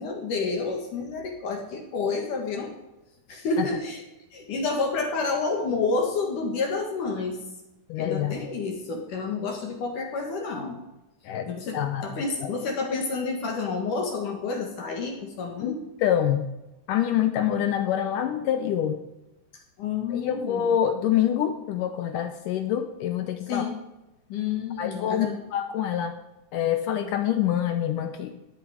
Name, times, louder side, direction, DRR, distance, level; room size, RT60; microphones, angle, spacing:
voice 1, 0.0-2.7 3.3-4.0 4.3-7.4 8.0-10.8 11.5-15.8 19.5-20.7 23.5-23.8 24.3-25.4, left 4 dB, 60° left, 2 dB, 2.9 m, -29 dB
voice 2, 7.9-8.4 11.2-12.1 12.4-12.5 15.6-16.5 16.9-19.0 20.1-23.7 24.8-26.2 26.5-28.4, left 10 dB, 80° left, 8 dB, 1.9 m, -26 dB
16.5 x 11.0 x 5.0 m, 0.98 s
omnidirectional pair, 4.7 m